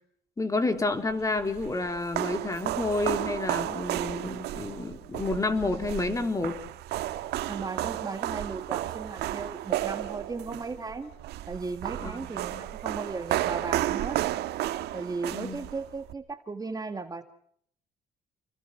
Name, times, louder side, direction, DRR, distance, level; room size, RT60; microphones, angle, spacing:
voice 1, 0.4-6.6 12.0-12.6 15.3-15.6, left 3 dB, 20° left, 7 dB, 3.5 m, -30 dB
sound 1, 1.1-16.1, right 14 dB, 80° right, 1.6 m, -33 dB
voice 2, 7.5-11.1 11.5-14.2 14.9-17.2, right 4 dB, 20° right, 8 dB, 1.9 m, -36 dB
29.0 x 21.0 x 5.9 m, 0.66 s
cardioid pair, 110°, 17 cm